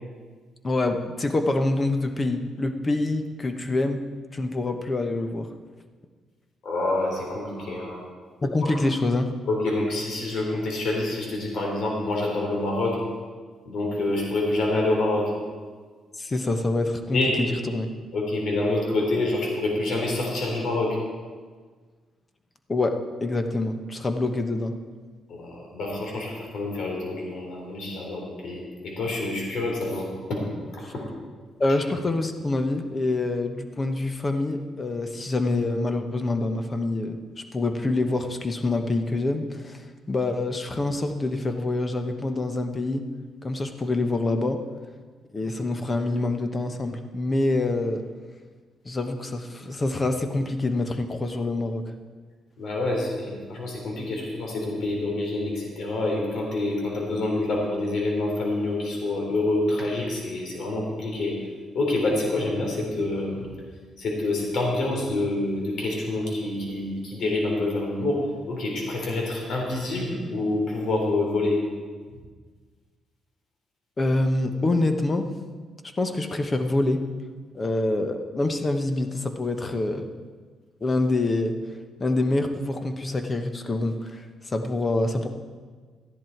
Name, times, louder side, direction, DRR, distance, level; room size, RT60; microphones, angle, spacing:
voice 1, 0.6-4.0 4.3-5.5 8.4-9.3 16.2-17.9 22.7-24.7 30.8-30.9 31.6-43.1 43.4-44.6 45.3-48.0 48.8-51.8 74.0-75.3 76.0-77.0 77.5-80.1 80.8-81.5 82.0-85.3, left 2 dB, 30° left, 7 dB, 1.1 m, -26 dB
voice 2, 6.6-8.0 8.6-8.7 9.5-13.0 13.7-15.3 17.1-17.4 18.1-21.0 25.3-30.4 30.7-31.1 52.6-61.3 61.7-63.5 64.0-68.2 68.5-71.6, left 2 dB, 65° left, -1 dB, 3.6 m, -27 dB
13.0 x 10.5 x 4.6 m, 1.5 s
cardioid pair, 90°, 0 cm